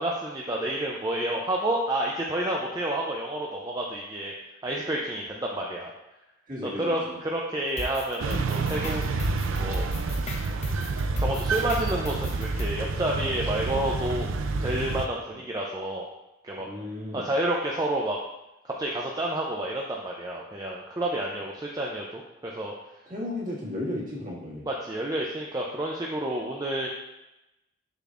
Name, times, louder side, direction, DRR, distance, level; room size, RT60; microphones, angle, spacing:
voice 1, 0.0-4.3 4.6-5.9 6.8-7.0 7.2-9.0 9.6-9.9 11.2-14.3 14.6-16.1 16.4-16.7 17.1-18.2 18.6-22.7 24.7-26.9, right 1 dB, 20° right, -2 dB, 0.5 m, -29 dB
voice 2, 6.5-7.2 15.3-15.4 16.6-17.2 23.1-24.7, left 1 dB, 40° right, -6 dB, 1.9 m, -34 dB
sound 1, 7.8-12.7, left 1 dB, 35° left, 0.7 m, -35 dB
sound 2, 8.2-15.1, right 3 dB, 80° right, 0.4 m, -29 dB
6.7 x 6.0 x 2.5 m, 0.94 s
head